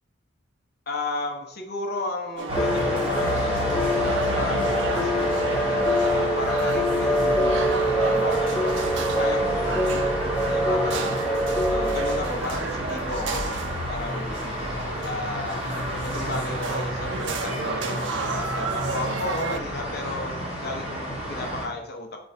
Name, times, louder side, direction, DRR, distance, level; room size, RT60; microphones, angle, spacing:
voice 1, 0.9-5.4 6.0-8.9 9.2-10.2 10.5-11.2 11.7-13.6 13.9-14.6 15.0-15.7 16.0-22.2, left 2 dB, 50° left, 3 dB, 0.9 m, -34 dB
sound 1, 2.4-19.6, right 4 dB, 60° right, 0.5 m, -34 dB
sound 2, 2.5-21.6, equal, 30° right, 2.4 m, -30 dB
sound 3, 2.6-12.2, equal, 5° left, 0.5 m, -25 dB
5.4 x 3.8 x 5.6 m, 0.76 s
head